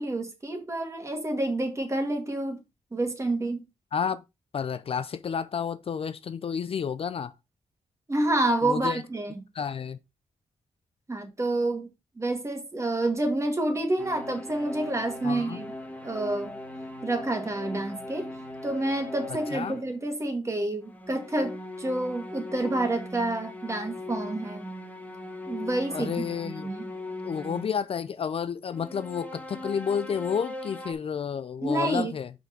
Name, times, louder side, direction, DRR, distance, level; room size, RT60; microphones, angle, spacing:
voice 1, 0.0-2.6 2.9-3.6 8.1-9.4 11.1-11.9 12.2-15.7 16.0-16.6 17.0-18.3 18.6-24.7 25.5-26.1 26.4-26.9 31.6-32.1, right 2 dB, 25° right, 1.9 m, -28 dB
voice 2, 3.9-4.2 4.5-7.3 8.6-9.0 9.5-10.0 15.2-15.6 19.5-19.8 25.9-26.7 27.2-32.3, left 7 dB, 50° left, 0.4 m, -30 dB
sound 1, 14.0-19.9 20.9-27.9 28.7-30.9, left 1 dB, 10° left, 1.3 m, -39 dB
5.7 x 3.9 x 5.9 m
wide cardioid pair, 115°, 13 cm